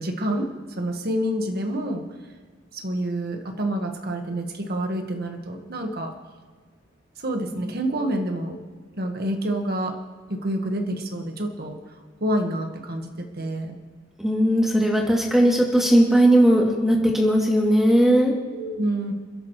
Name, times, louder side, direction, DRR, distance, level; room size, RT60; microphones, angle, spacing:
voice 1, 0.0-2.1 2.7-6.1 7.2-8.6 8.9-10.0 10.3-11.8 12.2-13.8 18.5-19.1, right 1 dB, 55° right, 4 dB, 1.6 m, -28 dB
voice 2, 14.2-18.3, right 1 dB, ahead, -2 dB, 2.8 m, -18 dB
28.5 x 11.0 x 3.2 m, 1.5 s
head